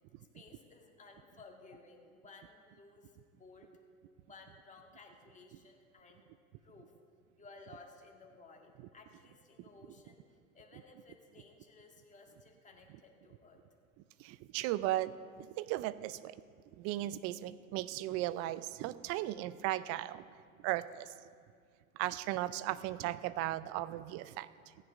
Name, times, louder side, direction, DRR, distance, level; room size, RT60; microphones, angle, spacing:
voice 1, 0.3-3.7 4.2-6.3 6.6-6.9 7.4-13.6, left 3 dB, 15° left, 1 dB, 1.8 m, -57 dB
voice 2, 14.2-15.1 15.6-16.4 16.8-20.2 20.6-21.1 22.0-24.5, right 15 dB, 35° right, 16 dB, 0.4 m, -36 dB
15.0 x 9.9 x 5.1 m, 2.1 s
hypercardioid pair, 105°, 43 cm